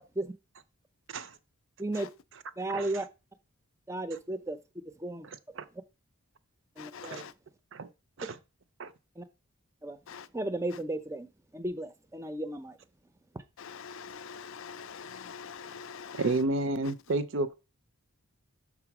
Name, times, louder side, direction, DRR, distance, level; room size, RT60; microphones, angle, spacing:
voice 1, 2.6-3.1 3.9-4.6 5.0-5.3 6.8-7.3 9.2-9.3 9.8-10.0 10.3-12.8 13.3-13.4, right 1 dB, 15° right, 0.5 m, -34 dB
voice 2, 6.8-7.3 10.1-10.3 13.6-16.4, left 6 dB, 60° left, 0.4 m, -44 dB
voice 3, 16.1-17.5, right 2 dB, 60° right, 0.6 m, -30 dB
6.1 x 3.8 x 5.9 m
head